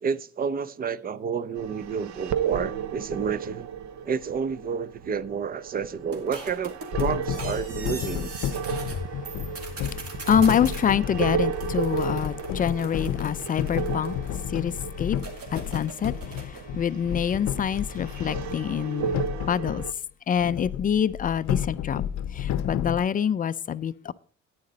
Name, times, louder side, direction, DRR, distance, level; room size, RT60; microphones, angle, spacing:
voice 1, 0.0-3.7 4.1-8.3, right 6 dB, 30° right, 0.5 m, -30 dB
sound 1, 1.6-19.9, right 8 dB, 70° right, 0.8 m, -34 dB
sound 2, 6.1-9.0 9.2-10.8 11.5-14.5 15.2-16.7, right 3 dB, 50° right, 2.6 m, -41 dB
sound 3, 6.9-19.9 20.4-23.0, left 10 dB, 65° left, 0.7 m, -32 dB
voice 2, 10.3-14.1 14.5-15.2 15.5-19.1 19.5-19.8 20.3-22.1 22.4-24.1, left 8 dB, 30° left, 0.4 m, -26 dB
10.5 x 9.6 x 3.9 m
cardioid pair, 125°, 30 cm